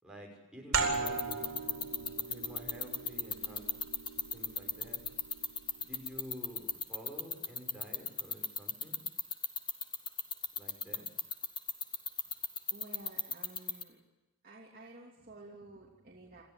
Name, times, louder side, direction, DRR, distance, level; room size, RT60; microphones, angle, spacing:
voice 1, 0.0-1.3 2.3-3.8 4.3-5.0 5.8-9.0 10.6-11.1, equal, 5° right, -2 dB, 6.2 m, -49 dB
sound 1, 0.7-6.0, right 4 dB, 75° right, 4.1 m, -38 dB
sound 2, 0.9-13.8, left 7 dB, 20° left, 1.4 m, -33 dB
voice 2, 12.7-14.0 14.4-16.4, right 2 dB, 40° right, -3 dB, 3.0 m, -52 dB
27.5 x 14.0 x 9.8 m, 1.1 s
head